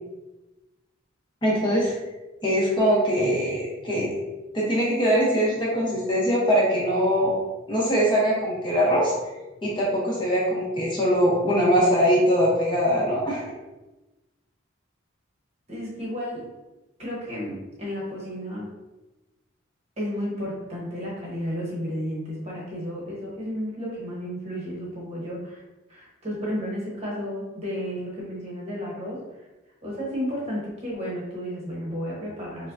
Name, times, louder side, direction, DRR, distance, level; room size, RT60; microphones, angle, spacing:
voice 1, 1.4-1.9 2.4-4.1 4.5-7.3 7.7-9.1 9.6-13.4, equal, 25° left, -5 dB, 0.8 m, -22 dB
voice 2, 15.7-16.5 17.0-18.7 20.0-25.6 25.9-29.5 29.8-32.7, equal, 30° right, -5 dB, 1.0 m, -32 dB
4.9 x 2.2 x 2.6 m, 1.1 s
head